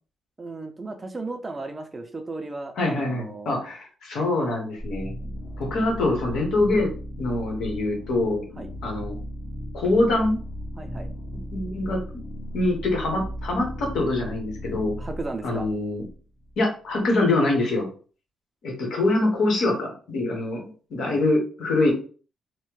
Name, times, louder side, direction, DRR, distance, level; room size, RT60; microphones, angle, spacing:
voice 1, 0.4-3.5 8.6-8.7 10.8-11.1 15.0-15.7 21.1-21.2, right 3 dB, 25° right, 6 dB, 0.4 m, -35 dB
voice 2, 2.8-5.1 5.6-6.9 7.2-8.4 8.8-9.2 9.7-10.4 11.5-12.0 12.5-15.0 15.4-16.0 16.6-17.9 18.6-21.9, left 2 dB, 80° left, 0 dB, 1.1 m, -24 dB
sound 1, 4.8-16.5, equal, 35° left, 1.0 m, -36 dB
3.1 x 2.1 x 3.1 m, 0.39 s
cardioid pair, 110°, 0 cm